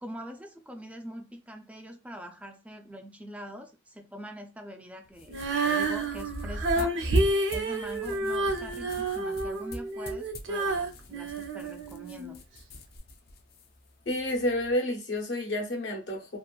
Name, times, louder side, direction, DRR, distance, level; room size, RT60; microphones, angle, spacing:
voice 1, 0.0-6.9 7.5-12.4, equal, 5° right, 0.3 m, -43 dB
sound 1, 5.0-14.7, left 2 dB, 55° left, 0.5 m, -46 dB
Female singing, 5.3-12.4 13.0-13.1, right 2 dB, 85° right, 0.6 m, -29 dB
voice 2, 14.0-16.4, left 1 dB, 75° left, 1.0 m, -30 dB
2.7 x 2.4 x 2.2 m
head